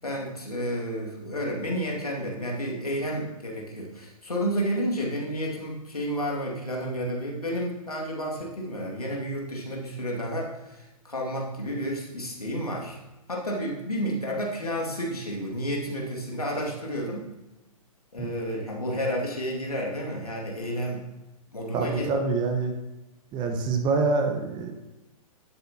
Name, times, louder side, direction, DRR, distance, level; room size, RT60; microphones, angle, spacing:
voice 1, 0.0-13.0 13.3-17.2 18.1-21.1 21.5-22.1, equal, 90° left, -2 dB, 2.2 m, -31 dB
voice 2, 21.7-22.7 23.3-24.7, right 4 dB, 25° right, 5 dB, 1.2 m, -26 dB
11.0 x 7.9 x 2.9 m, 1.0 s
figure-of-eight pair, 120°, 19 cm